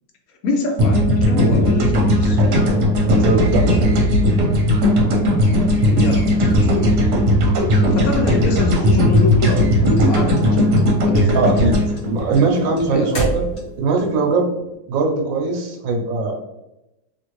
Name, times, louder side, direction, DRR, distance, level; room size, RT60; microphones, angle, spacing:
voice 1, 0.4-2.4 5.2-6.9 7.9-10.6 11.0-11.4 12.9-13.1, left 2 dB, 70° left, 2 dB, 0.9 m, -25 dB
sound 1, 0.8-13.0, left 1 dB, 65° right, 1.3 m, -17 dB
voice 2, 3.0-4.2 11.3-11.8 12.1-13.4 13.8-14.5 14.9-16.3, right 3 dB, 85° right, 0 dB, 1.3 m, -20 dB
sound 2, 8.7-10.0 10.3-10.9 11.2-14.0, right 1 dB, 40° left, 1.1 m, -28 dB
3.1 x 2.5 x 3.0 m, 0.92 s
omnidirectional pair, 2.0 m